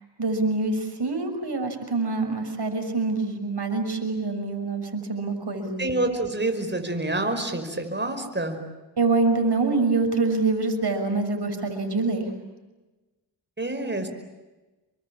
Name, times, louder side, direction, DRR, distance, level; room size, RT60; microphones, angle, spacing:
voice 1, 0.2-5.8 9.0-12.2, right 3 dB, 60° right, 5 dB, 6.4 m, -25 dB
voice 2, 5.8-8.6 13.6-14.1, right 2 dB, 25° right, 6 dB, 5.4 m, -27 dB
28.0 x 24.0 x 8.8 m, 1.1 s
cardioid pair, 50°, 45 cm